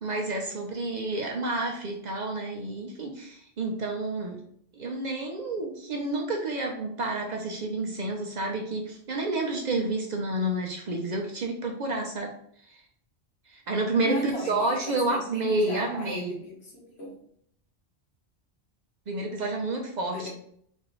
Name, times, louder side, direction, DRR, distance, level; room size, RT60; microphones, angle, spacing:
voice 1, 0.0-4.4 4.7-12.3 12.6-12.8 13.5-16.4 19.1-20.3, right 2 dB, 50° right, 1 dB, 0.6 m, -30 dB
voice 2, 14.0-17.1 20.1-20.3, equal, 75° left, -3 dB, 1.4 m, -37 dB
4.0 x 2.7 x 2.9 m, 0.66 s
omnidirectional pair, 1.1 m